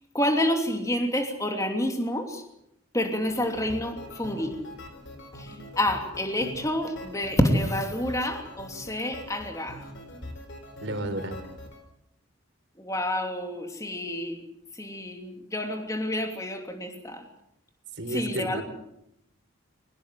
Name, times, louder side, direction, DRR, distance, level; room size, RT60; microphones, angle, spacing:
voice 1, 0.1-2.4 2.9-4.6 5.3-9.8 12.8-14.4 14.7-17.2 18.1-18.6, left 1 dB, 15° left, 4 dB, 2.9 m, -28 dB
sound 1, 3.2-11.8, left 1 dB, 60° left, 4.4 m, -43 dB
voice 2, 10.8-11.4 17.9-18.6, right 1 dB, 60° right, 7 dB, 4.2 m, -31 dB
23.0 x 20.0 x 7.6 m, 0.78 s
head